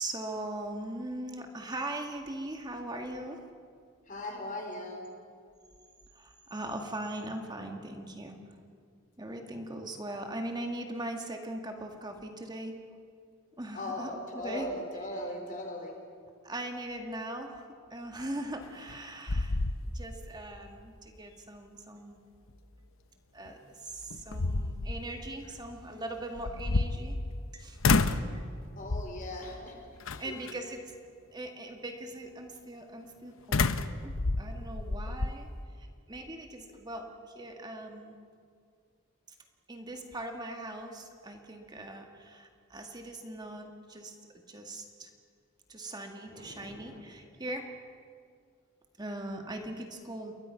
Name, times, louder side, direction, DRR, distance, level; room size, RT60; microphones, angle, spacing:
voice 1, 0.0-3.4 6.2-8.4 9.2-12.7 13.6-14.7 16.4-19.6 19.9-22.2 23.3-27.8 30.2-30.8 31.3-33.8 34.0-35.5 35.8-37.1 37.3-38.1 39.7-44.2 44.5-45.1 45.7-47.7 49.0-50.3, right 1 dB, 20° right, 3 dB, 1.9 m, -40 dB
voice 2, 4.1-5.1 13.7-16.0 28.8-30.6 46.3-47.0, left 1 dB, 40° left, 2 dB, 4.5 m, -39 dB
sound 1, 18.6-19.0 19.3-20.3 20.7-20.8 23.5-23.6 24.1-25.0 26.4-27.5 27.8-28.3 28.9-29.3 30.1-30.5 33.5-35.3, left 3 dB, 80° left, 0.9 m, -29 dB
29.0 x 22.0 x 5.8 m, 2.1 s
head